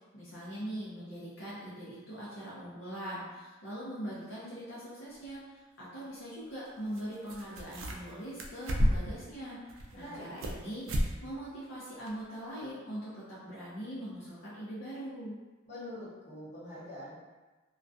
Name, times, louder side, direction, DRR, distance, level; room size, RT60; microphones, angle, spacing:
voice 1, 0.1-15.4, equal, 70° left, -9 dB, 0.6 m, -42 dB
sound 1, 5.2-5.3 6.9-7.0 7.3-8.1 8.4-9.2 9.7-10.6 10.9-11.1 11.4-11.5 12.1-12.2, equal, 70° right, 0.3 m, -31 dB
voice 2, 9.9-10.5 15.6-17.1, left 1 dB, 35° left, -11 dB, 1.2 m, -44 dB
2.3 x 2.2 x 2.5 m, 1.2 s
head